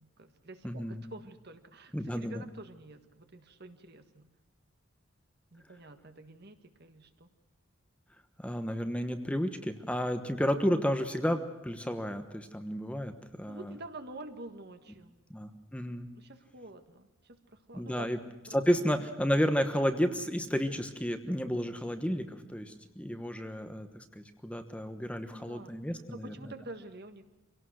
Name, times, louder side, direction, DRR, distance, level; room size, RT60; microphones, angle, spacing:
voice 1, 0.0-4.3 5.5-7.3 13.4-15.2 16.1-18.1 18.5-18.8 25.2-27.2, right 2 dB, 50° right, 8 dB, 1.6 m, -48 dB
voice 2, 0.6-1.0 1.9-2.4 8.4-13.7 15.3-16.1 17.7-18.2 18.5-26.5, equal, 5° left, 7 dB, 1.0 m, -32 dB
24.5 x 17.5 x 6.3 m, 1.1 s
head